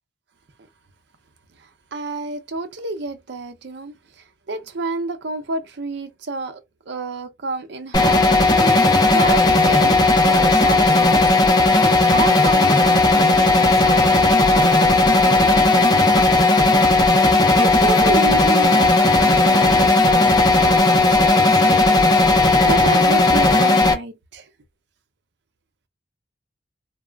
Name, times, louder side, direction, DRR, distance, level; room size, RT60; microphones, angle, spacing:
voice 1, 1.9-3.9 4.5-8.5 9.1-11.2 12.1-16.8 17.2-22.1 22.7-24.5, right 3 dB, 65° right, 0.6 m, -30 dB
sound 1, 7.9-23.9, left 2 dB, 20° left, 0.5 m, -15 dB
2.3 x 2.0 x 3.3 m
head